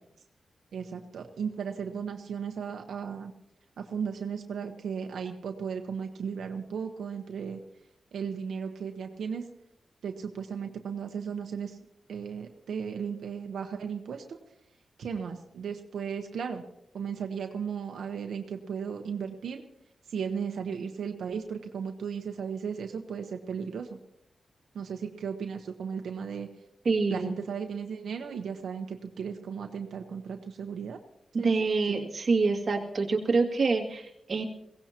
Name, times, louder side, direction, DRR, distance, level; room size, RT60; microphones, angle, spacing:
voice 1, 0.7-3.3 3.8-7.6 8.1-9.5 10.0-11.8 12.1-14.4 15.0-16.6 16.9-19.6 20.1-24.0 24.7-26.5 27.1-31.0 31.4-31.6 31.9-32.0, right 6 dB, 85° right, 4 dB, 1.1 m, -35 dB
voice 2, 26.9-27.3 31.4-34.4, right 4 dB, 45° right, 1 dB, 2.2 m, -26 dB
22.5 x 17.0 x 2.9 m, 0.79 s
wide cardioid pair, 135°, 0 cm